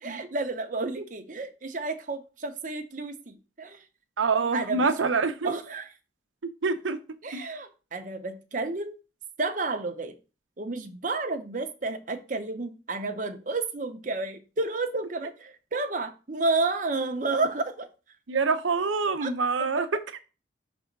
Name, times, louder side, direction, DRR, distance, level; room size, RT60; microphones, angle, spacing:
voice 1, 0.0-3.8 4.5-4.9 5.4-5.9 7.2-8.9 9.4-10.2 10.6-17.9 19.2-19.3, right 3 dB, 40° right, 0.8 m, -31 dB
voice 2, 4.2-5.5 6.6-7.0 7.3-7.4 18.3-20.2, right 4 dB, 80° right, 0.7 m, -26 dB
6.1 x 3.5 x 5.2 m
head